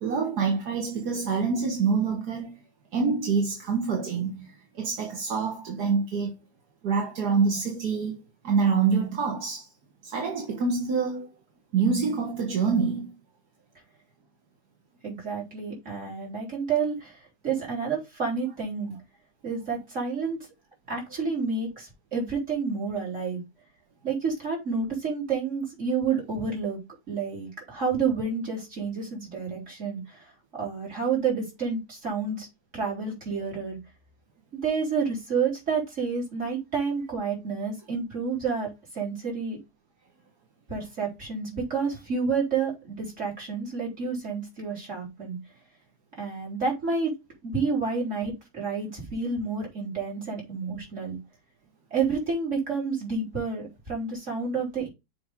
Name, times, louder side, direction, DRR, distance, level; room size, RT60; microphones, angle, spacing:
voice 1, 0.0-2.5 2.9-6.3 6.8-8.2 8.4-9.7 10.0-11.3 11.7-13.1, right 5 dB, 75° right, 1.9 m, -26 dB
voice 2, 15.0-18.9 19.4-20.5 20.9-23.4 24.0-26.8 27.1-32.5 32.7-33.8 34.6-38.7 38.9-39.6 40.7-45.4 46.2-47.1 47.4-51.2 51.9-54.9, right 5 dB, 45° right, 4.4 m, -29 dB
7.0 x 5.3 x 3.7 m
omnidirectional pair, 1.7 m